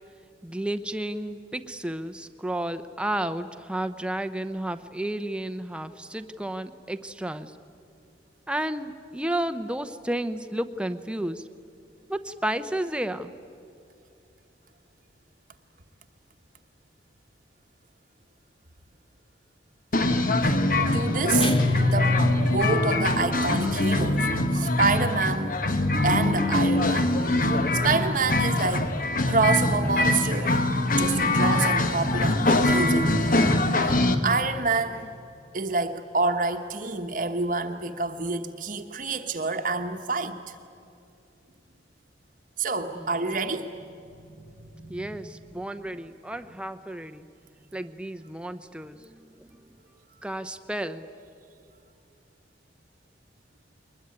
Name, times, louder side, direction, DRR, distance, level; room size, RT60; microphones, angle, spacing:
voice 1, 0.4-7.5 8.5-11.4 12.1-13.3 42.9-43.1 44.9-47.3 47.7-49.5 50.2-51.0, right 1 dB, 5° right, 9 dB, 0.8 m, -32 dB
sound 1, 19.9-34.1, left 2 dB, 45° left, 1.3 m, -23 dB
voice 2, 20.9-21.6 21.8-25.6 26.0-27.1 27.5-28.9 29.3-30.6 30.9-33.2 33.8-35.1 35.5-40.5 42.6-45.3 45.8-45.9, right 3 dB, 45° right, 5 dB, 1.1 m, -28 dB
sound 2, 21.4-23.5, left 2 dB, 30° left, 1.3 m, -24 dB
22.0 x 21.0 x 9.6 m, 2.5 s
head